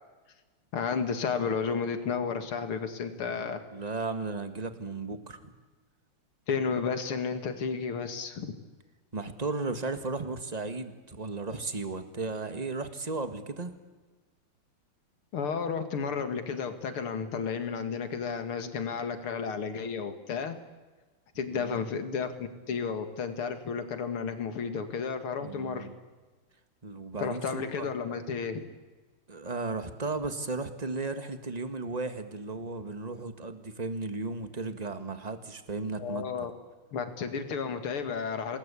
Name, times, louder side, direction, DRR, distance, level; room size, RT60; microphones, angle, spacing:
voice 1, 0.7-3.6 6.5-8.6 15.3-20.6 21.4-25.9 27.2-28.6 36.0-36.5 36.9-38.6, left 5 dB, 85° left, 8 dB, 2.9 m, -32 dB
voice 2, 3.2-5.5 9.1-13.7 21.5-21.8 25.4-25.9 26.8-27.9 29.3-36.2, right 3 dB, 20° right, 9 dB, 1.6 m, -35 dB
27.5 x 20.0 x 8.6 m, 1.3 s
omnidirectional pair, 2.3 m